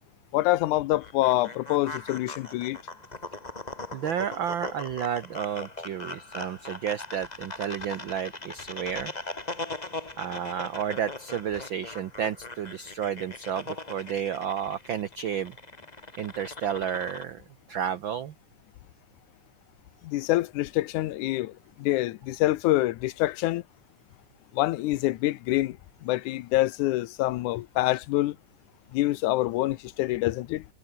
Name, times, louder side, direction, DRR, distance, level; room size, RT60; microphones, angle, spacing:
voice 1, 0.3-2.8 20.0-23.6 24.5-28.4 28.9-30.7, left 16 dB, 90° left, 2.2 m, -26 dB
sound 1, 1.0-17.2, left 2 dB, 15° left, 1.8 m, -40 dB
voice 2, 3.9-9.1 10.2-15.5 16.2-17.4 17.7-18.3, right 9 dB, 85° right, 1.0 m, -31 dB
omnidirectional pair, 3.4 m